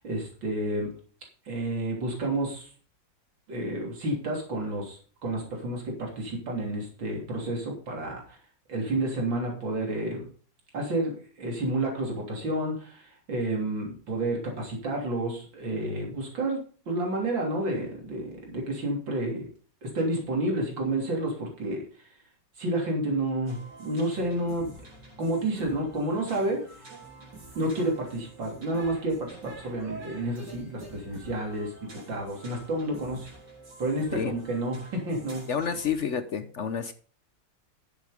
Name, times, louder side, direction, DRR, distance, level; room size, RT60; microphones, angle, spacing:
voice 1, 0.0-0.9 1.5-2.7 3.5-8.4 8.7-10.3 10.7-19.5 19.8-21.8 22.6-24.7 25.2-26.6 27.6-31.7 32.1-33.3 33.8-35.5, right 1 dB, 85° right, 0 dB, 3.9 m, -30 dB
sound 1, 23.5-36.0, right 2 dB, 65° right, 4.2 m, -47 dB
voice 2, 35.5-36.9, left 7 dB, 55° left, 11 dB, 0.9 m, -29 dB
11.5 x 7.9 x 5.1 m, 0.41 s
omnidirectional pair, 2.0 m